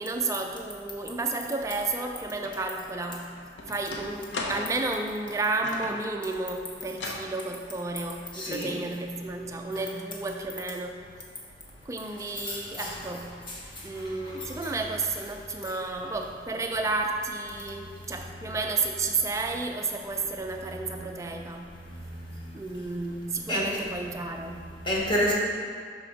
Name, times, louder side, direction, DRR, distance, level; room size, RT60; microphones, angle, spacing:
voice 1, 0.0-3.4 3.7-11.1 11.9-13.4 13.8-21.6 22.5-24.8, right 3 dB, 15° right, 3 dB, 0.3 m, -32 dB
sound 1, 2.4-2.6 3.0-6.1 6.9-7.3, left 2 dB, 80° left, 0.7 m, -37 dB
voice 2, 8.3-8.7 12.4-12.9 14.3-14.5 21.0-21.1 23.5-23.6 24.8-25.3, equal, 25° left, -4 dB, 1.0 m, -28 dB
5.9 x 3.4 x 5.0 m, 2.1 s
head